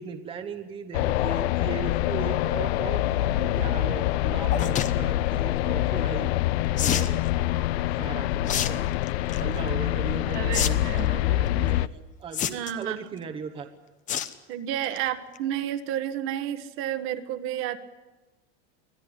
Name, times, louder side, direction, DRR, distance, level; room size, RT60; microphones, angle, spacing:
voice 1, 0.0-6.3 6.8-7.2 7.5-8.9 9.2-13.7, right 6 dB, 15° right, 6 dB, 1.1 m, -38 dB
sound 1, 0.9-11.9, left 14 dB, 90° left, 0.8 m, -25 dB
sound 2, 4.5-4.9 6.8-7.1 8.4-8.7 9.1-9.4 10.5-10.7 11.0-11.1 12.3-12.8 14.1-14.3 14.7-15.0 15.3-15.4 15.6-15.7, left 9 dB, 25° left, 1.0 m, -27 dB
voice 2, 10.3-11.1 12.5-13.0 14.5-17.8, right 11 dB, 40° right, 9 dB, 1.4 m, -31 dB
24.5 x 17.0 x 9.9 m, 1.2 s
supercardioid pair, 165°, 31 cm